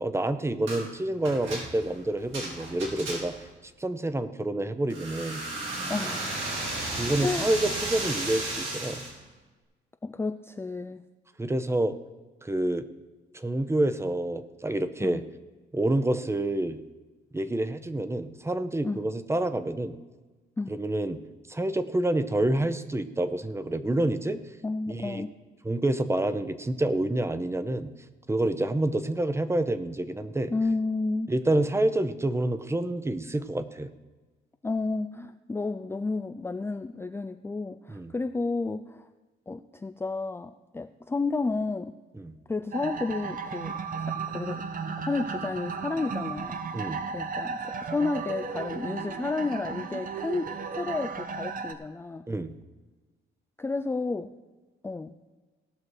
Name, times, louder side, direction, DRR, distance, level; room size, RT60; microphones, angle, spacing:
voice 1, 0.0-3.3 3.8-5.4 7.0-9.0 11.4-12.0 12.4-12.8 13.3-15.2 15.7-16.8 17.3-20.0 20.7-21.2 21.5-24.4 24.9-25.2 25.6-27.9 28.3-30.5 31.3-33.9 37.9-38.1 42.2-42.3 46.7-47.0 52.3-52.5, right 1 dB, 15° right, 12 dB, 0.7 m, -28 dB
sound 1, 0.7-0.9 1.2-3.5 4.9-9.1, right 2 dB, 75° right, 3.6 m, -34 dB
voice 2, 5.9-6.3 7.2-7.5 10.0-11.0 15.0-15.2 18.8-19.0 20.6-20.7 24.6-25.3 30.5-31.3 34.6-39.1 39.5-41.9 42.5-44.6 45.0-46.6 47.1-52.2 53.6-54.3 54.8-55.1, left 3 dB, 10° left, 8 dB, 0.4 m, -31 dB
sound 2, 42.7-51.7, right 5 dB, 45° right, 0.9 m, -35 dB
17.5 x 6.0 x 4.8 m, 1.2 s
cardioid pair, 90°, 20 cm